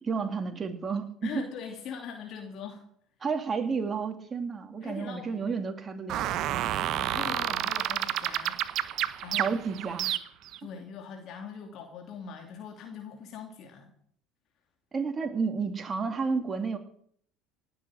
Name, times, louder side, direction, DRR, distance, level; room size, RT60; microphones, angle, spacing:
voice 1, 0.0-1.4 3.2-6.3 9.4-10.1 14.9-16.8, right 5 dB, 30° right, 6 dB, 2.4 m, -31 dB
voice 2, 1.2-2.8 4.8-5.4 6.8-8.6 8.9-9.6 10.6-13.9, left 6 dB, 55° left, 3 dB, 2.8 m, -41 dB
sound 1, 6.1-10.6, right 12 dB, 55° right, 1.0 m, -30 dB
17.5 x 7.8 x 8.6 m, 0.62 s
hypercardioid pair, 75°, 0 cm